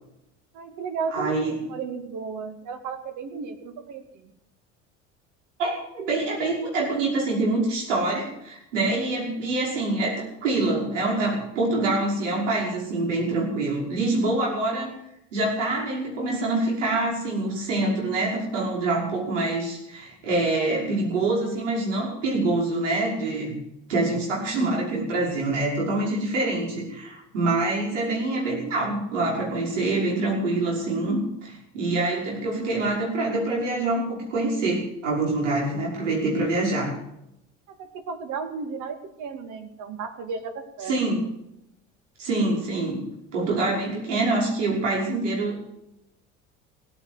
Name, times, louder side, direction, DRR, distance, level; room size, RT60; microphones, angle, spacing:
voice 1, 0.5-1.4 1.6-4.3 37.7-41.0, right 5 dB, 55° right, 7 dB, 2.6 m, -34 dB
voice 2, 1.1-1.6 5.6-14.9 15.3-23.5 23.9-36.9 40.9-41.2 42.2-43.0 43.3-45.6, right 2 dB, 80° right, -2 dB, 5.8 m, -25 dB
17.0 x 9.2 x 8.1 m, 0.80 s
hypercardioid pair, 70°, 36 cm